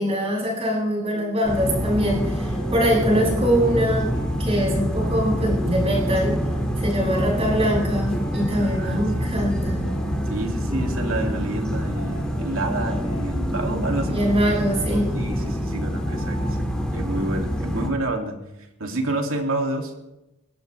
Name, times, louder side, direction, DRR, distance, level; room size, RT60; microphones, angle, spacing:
voice 1, 0.0-6.4 6.8-9.8 14.1-15.1, equal, 25° right, -3 dB, 7.9 m, -23 dB
sound 1, 1.1-16.5, equal, 25° left, 6.2 m, -41 dB
sound 2, 1.4-17.9, equal, 5° left, 2.4 m, -26 dB
voice 2, 8.6-9.5 10.3-14.2 15.1-18.4 18.8-19.9, right 2 dB, 65° right, 2 dB, 2.7 m, -29 dB
22.5 x 17.0 x 3.5 m, 0.97 s
head